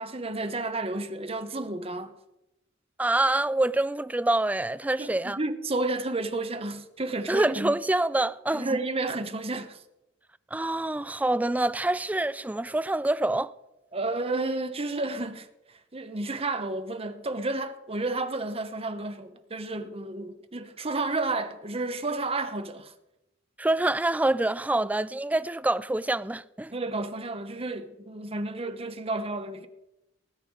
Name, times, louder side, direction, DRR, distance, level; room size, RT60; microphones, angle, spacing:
voice 1, 0.0-2.1 5.0-7.8 8.5-9.8 13.9-15.5 15.9-22.9 26.7-29.7, right 2 dB, 30° right, 1.0 m, -31 dB
voice 2, 3.0-5.4 7.3-8.8 10.5-13.5 23.6-26.7, right 2 dB, 10° right, 0.3 m, -26 dB
19.0 x 9.1 x 4.8 m
head